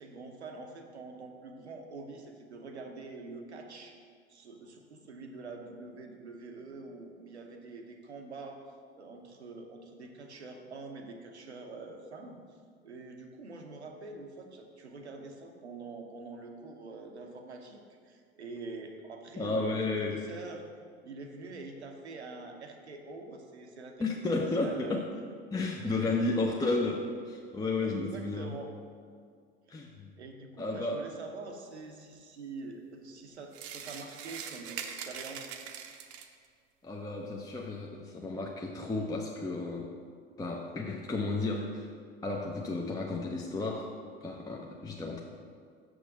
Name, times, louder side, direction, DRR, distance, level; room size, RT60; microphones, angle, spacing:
voice 1, 0.0-4.0 4.3-8.6 9.0-12.4 12.8-20.6 21.0-24.1 24.6-25.0 25.6-26.3 27.8-28.7 30.2-35.6, right 3 dB, 85° right, 3 dB, 0.8 m, -45 dB
voice 2, 19.3-20.3 24.0-25.0 25.5-28.6 29.7-30.1 30.6-31.0 36.8-39.9 40.4-41.9 42.2-44.0 44.2-45.2, left 3 dB, 10° left, 0 dB, 0.6 m, -32 dB
sound 1, 33.5-36.5, right 8 dB, 50° right, 0.7 m, -42 dB
6.4 x 6.1 x 4.8 m, 2.1 s
figure-of-eight pair, 65°, 32 cm